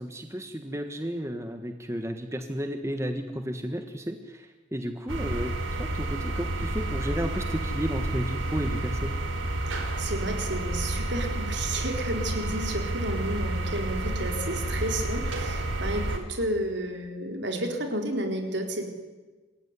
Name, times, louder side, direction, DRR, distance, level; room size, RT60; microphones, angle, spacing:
voice 1, 0.0-9.1, equal, 15° right, 6 dB, 1.5 m, -33 dB
sound 1, 5.1-16.2, right 1 dB, 90° right, 4.3 m, -30 dB
voice 2, 9.7-18.8, right 1 dB, 65° right, 4 dB, 4.2 m, -32 dB
27.5 x 21.0 x 9.8 m, 1.3 s
head